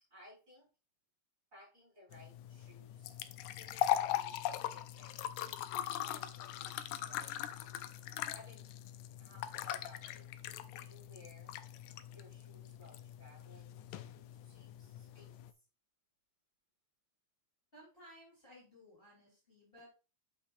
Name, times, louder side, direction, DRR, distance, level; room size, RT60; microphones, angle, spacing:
voice 1, 0.1-0.7 1.5-3.1 3.5-5.2 6.0-6.8 7.1-7.4 8.3-8.7 9.2-10.3 10.7-11.6 12.1-15.4, left 1 dB, 25° right, -6 dB, 5.3 m, -60 dB
sound 1, 2.1-15.5, left 12 dB, 90° left, 2.0 m, -40 dB
voice 2, 17.7-19.9, equal, 20° left, -6 dB, 3.7 m, -58 dB
8.4 x 6.8 x 2.6 m, 0.32 s
omnidirectional pair, 3.3 m